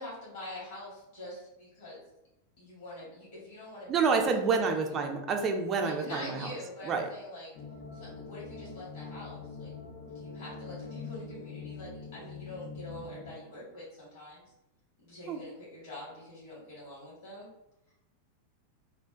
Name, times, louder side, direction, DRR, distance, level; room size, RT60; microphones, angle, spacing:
voice 1, 0.0-2.0 2.6-4.0 4.5-4.9 5.8-7.5 7.9-9.7 10.1-14.4 15.0-17.5, left 1 dB, 65° left, -8 dB, 1.1 m, -45 dB
voice 2, 3.9-6.5 6.8-7.1 15.3-15.4, right 5 dB, 30° right, 4 dB, 0.3 m, -28 dB
sound 1, 7.5-13.3, left 4 dB, 45° left, 0.4 m, -44 dB
2.7 x 2.1 x 2.4 m, 0.91 s
figure-of-eight pair, 90°, 0 cm